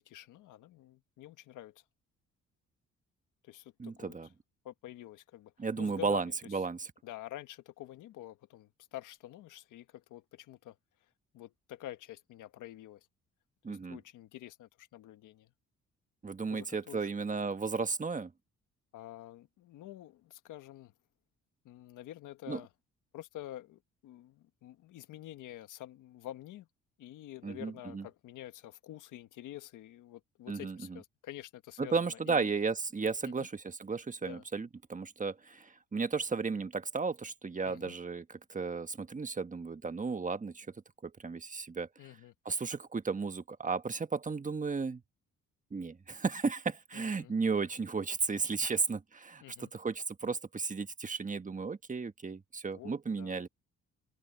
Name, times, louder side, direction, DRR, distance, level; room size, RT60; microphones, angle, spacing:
voice 1, 0.0-1.8 3.4-4.3 4.6-6.3 7.0-10.8 11.3-13.1 13.7-15.5 16.5-17.1 18.9-20.9 21.6-22.7 23.1-26.7 27.0-32.5 33.2-33.3 34.2-34.4 37.6-37.9 42.0-42.3 46.9-47.3 49.4-49.7 52.7-53.5, left 14 dB, 85° left, 1.5 m, -48 dB
voice 2, 3.8-4.3 5.6-6.9 13.6-14.0 16.2-18.3 22.5-22.6 27.4-28.0 30.5-31.0 31.8-40.7 41.0-41.9 42.4-45.0 45.7-53.5, right 4 dB, 25° right, 1.4 m, -34 dB
cardioid pair, 90°, 30 cm